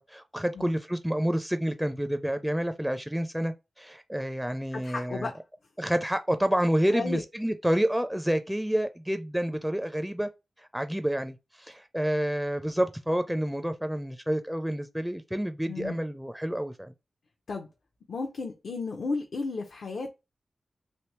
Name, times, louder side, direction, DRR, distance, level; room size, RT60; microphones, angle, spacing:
voice 1, 0.1-5.3 5.8-10.3 10.6-16.9, equal, 5° right, 0.4 m, -29 dB
voice 2, 4.7-5.4 6.9-7.2 15.7-16.0 17.5-17.7 18.1-20.1, left 4 dB, 75° left, 0.6 m, -33 dB
3.3 x 2.7 x 3.1 m
cardioid pair, 65°, 0 cm